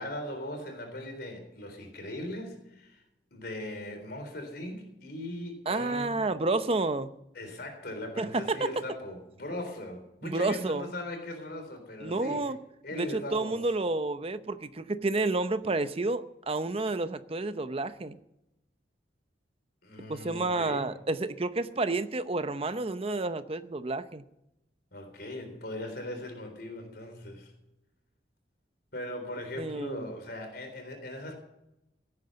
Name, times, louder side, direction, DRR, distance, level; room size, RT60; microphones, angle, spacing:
voice 1, 0.0-3.0 3.3-6.3 7.3-12.5 12.8-13.6 19.8-20.9 24.9-27.5 28.9-31.4, left 1 dB, 55° left, 5 dB, 3.7 m, -39 dB
voice 2, 5.7-7.1 8.2-8.7 10.2-10.9 12.0-12.6 13.0-18.2 20.1-24.2 29.6-30.1, right 2 dB, 30° right, 11 dB, 0.7 m, -30 dB
17.0 x 9.5 x 6.9 m, 0.87 s
head